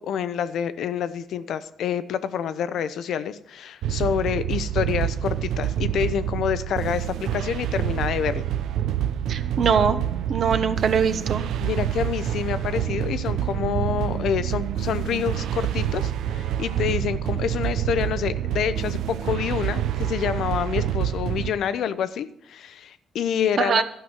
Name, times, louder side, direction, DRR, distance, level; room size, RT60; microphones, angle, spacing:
voice 1, 0.0-8.5 11.6-23.8, left 8 dB, 70° left, 13 dB, 0.7 m, -27 dB
sound 1, 3.8-21.5, right 10 dB, 80° right, 0.7 m, -27 dB
voice 2, 9.3-10.0 10.3-11.4 23.6-23.8, right 6 dB, 50° right, 10 dB, 1.0 m, -22 dB
12.5 x 6.0 x 8.9 m, 0.72 s
cardioid pair, 130°, 0 cm